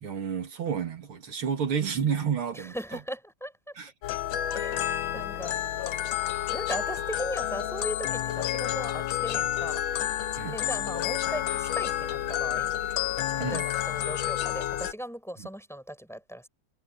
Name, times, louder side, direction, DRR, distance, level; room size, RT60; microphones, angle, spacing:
voice 1, 0.0-2.7 3.8-3.9 10.4-10.6 13.4-13.6, right 7 dB, 85° right, 3.3 m, -30 dB
voice 2, 2.5-3.8 4.5-5.6 6.5-9.8 10.5-12.8 13.4-16.5, equal, ahead, 7.2 m, -38 dB
sound 1, 4.0-14.9, left 11 dB, 70° left, 1.6 m, -30 dB
omnidirectional pair, 2.3 m